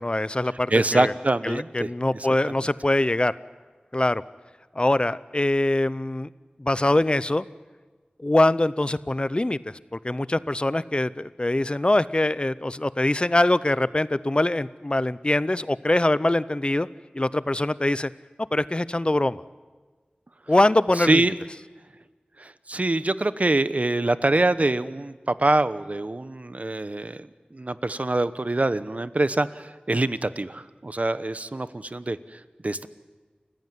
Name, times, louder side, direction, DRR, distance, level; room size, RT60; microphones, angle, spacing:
voice 1, 0.0-1.1 1.4-3.3 3.9-4.2 4.7-6.3 6.6-7.5 8.2-16.9 17.1-18.1 18.5-19.4 20.5-21.2, left 1 dB, 35° left, 17 dB, 0.7 m, -23 dB
voice 2, 0.7-2.3 21.0-21.4 22.4-32.9, right 2 dB, 50° right, 14 dB, 1.0 m, -25 dB
29.0 x 15.5 x 9.6 m, 1.4 s
wide cardioid pair, 55°, 3 cm